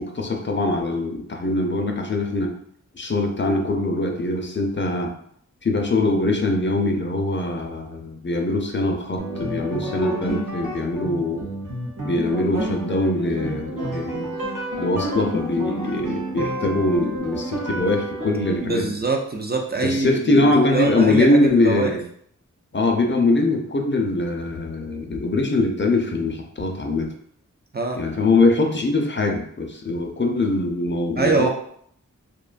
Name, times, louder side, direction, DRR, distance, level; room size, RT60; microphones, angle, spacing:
voice 1, 0.0-2.5 2.9-5.1 5.6-11.4 12.0-14.3 14.8-18.9 19.8-22.0 22.7-27.1 28.0-31.5, left 2 dB, 35° left, 2 dB, 0.5 m, -22 dB
sound 1, 9.2-18.6, right 1 dB, 80° right, 0.7 m, -30 dB
voice 2, 18.6-22.0 27.7-28.0 31.2-31.5, right 3 dB, 30° right, 2 dB, 0.4 m, -24 dB
2.6 x 2.2 x 2.4 m, 0.65 s
wide cardioid pair, 45°, 31 cm